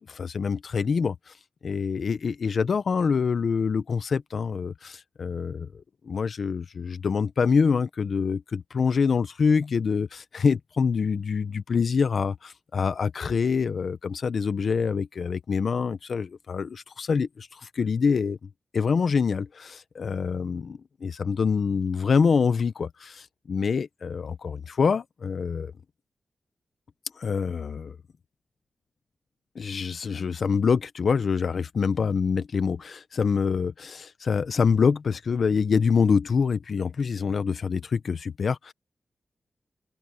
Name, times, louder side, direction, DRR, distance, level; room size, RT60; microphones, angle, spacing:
voice 1, 0.2-1.3 1.6-18.4 18.7-25.7 27.2-28.0 29.5-38.7, left 5 dB, 65° left, 0.9 m, -25 dB
wide cardioid pair, 90°, 0 cm